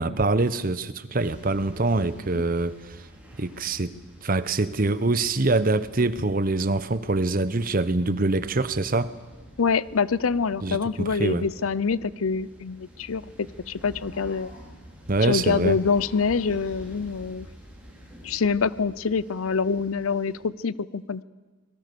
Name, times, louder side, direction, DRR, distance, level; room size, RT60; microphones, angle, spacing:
voice 1, 0.0-3.1 3.4-9.1 10.6-11.5 15.1-15.8, right 2 dB, 40° right, 15 dB, 0.9 m, -25 dB
sound 1, 1.1-20.4, equal, 5° right, 5.3 m, -48 dB
voice 2, 9.6-14.5 15.2-17.5 18.2-21.2, left 5 dB, 85° left, 19 dB, 0.6 m, -25 dB
sound 2, 13.6-15.0 15.5-17.1, left 2 dB, 40° left, 6.2 m, -51 dB
25.5 x 20.5 x 6.9 m, 1.3 s
head